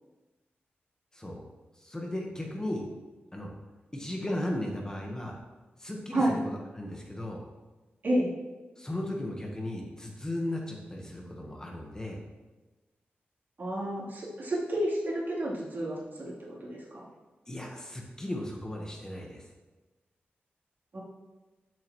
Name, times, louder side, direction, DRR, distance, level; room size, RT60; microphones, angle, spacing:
voice 1, 1.1-1.4 1.7-2.9 3.3-3.5 3.9-5.4 5.8-7.4 8.8-12.2 17.5-19.5, left 1 dB, 15° left, 0 dB, 1.3 m, -36 dB
voice 2, 13.6-16.3 16.6-17.0 20.9-21.0, right 1 dB, 55° right, -7 dB, 3.4 m, -30 dB
13.5 x 7.6 x 3.1 m, 1.2 s
wide cardioid pair, 115°, 4 cm